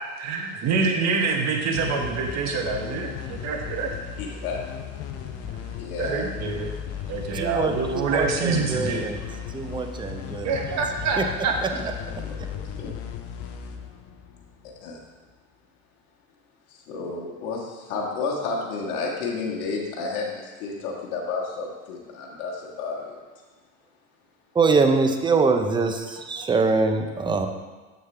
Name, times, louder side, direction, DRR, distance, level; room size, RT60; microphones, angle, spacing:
voice 1, 0.2-4.2 5.5-6.7 7.1-9.1 10.4-11.9, right 4 dB, 40° right, 2 dB, 1.3 m, -26 dB
sound 1, 1.7-15.0, left 8 dB, 35° left, 0.7 m, -36 dB
voice 2, 4.2-4.6 5.8-6.3 7.7-7.8 9.7-9.8 12.3-12.4 12.8-12.9 14.8-15.0 16.9-23.2, left 4 dB, 55° left, -2 dB, 1.6 m, -31 dB
voice 3, 7.3-9.2 9.5-10.6 11.2-11.3 12.1-12.5 24.5-27.5, right 4 dB, 10° right, 6 dB, 0.6 m, -24 dB
7.4 x 6.4 x 3.4 m, 1.3 s
hypercardioid pair, 85°, 42 cm